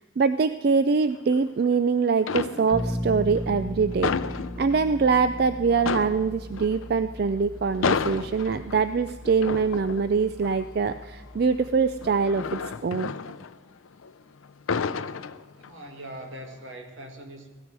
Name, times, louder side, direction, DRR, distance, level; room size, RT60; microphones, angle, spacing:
voice 1, 0.0-4.1 4.6-13.1, right 5 dB, 50° right, 11 dB, 0.4 m, -24 dB
sound 1, 1.2-1.8 2.2-3.0 3.4-5.1 5.4-5.5 5.8-14.1 14.4-15.9 16.3-16.6, left 5 dB, 90° left, 0.5 m, -32 dB
Bass guitar, 2.7-12.5, equal, 5° right, 1.0 m, -37 dB
voice 2, 15.5-17.5, right 1 dB, 75° right, 3 dB, 2.1 m, -41 dB
16.5 x 13.0 x 4.7 m, 1.4 s
head